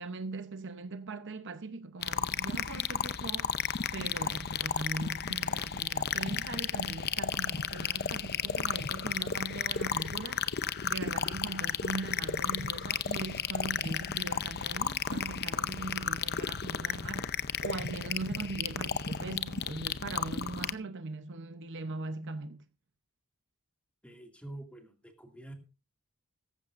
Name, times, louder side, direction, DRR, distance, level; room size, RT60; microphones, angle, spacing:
voice 1, 0.0-3.5 3.9-10.4 10.8-22.6, right 3 dB, 55° right, 0.8 m, -40 dB
sound 1, 2.0-20.7, left 7 dB, 50° left, 0.7 m, -33 dB
voice 2, 24.0-25.5, right 1 dB, 5° left, 2.3 m, -47 dB
16.0 x 15.0 x 2.6 m
head